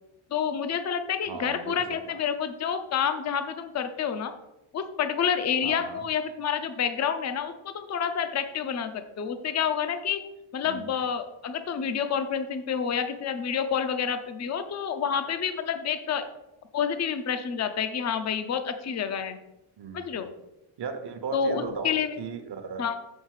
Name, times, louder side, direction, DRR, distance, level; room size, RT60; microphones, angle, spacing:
voice 1, 0.3-4.3 4.7-10.2 10.5-16.3 16.7-19.4 19.9-20.3 21.3-22.2 22.8-22.9, left 7 dB, 35° left, 9 dB, 0.5 m, -28 dB
voice 2, 1.3-2.2 5.6-6.1 10.6-11.0 15.1-15.3 19.8-20.2 20.8-22.8, right 5 dB, 50° right, 7 dB, 0.9 m, -37 dB
7.2 x 4.0 x 6.4 m, 0.92 s
wide cardioid pair, 165°, 49 cm